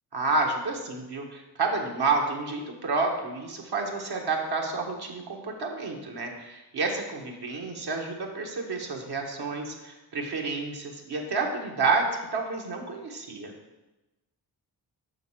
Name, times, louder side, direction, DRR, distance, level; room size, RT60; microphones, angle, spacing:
voice 1, 0.1-13.5, right 3 dB, 60° right, 1 dB, 1.6 m, -30 dB
7.5 x 6.4 x 3.7 m, 1.1 s
cardioid pair, 50°, 43 cm